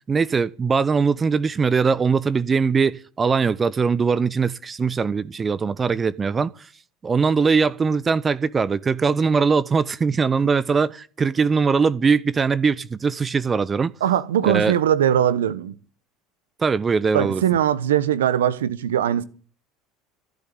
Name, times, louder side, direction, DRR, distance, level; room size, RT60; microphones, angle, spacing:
voice 1, 0.1-6.7 7.0-13.9 14.4-14.7 16.6-17.4, right 5 dB, 30° right, 0.7 m, -21 dB
voice 2, 14.0-15.7 17.1-19.2, right 10 dB, 90° right, 1.0 m, -20 dB
14.5 x 8.5 x 9.4 m
hypercardioid pair, 85°, 0 cm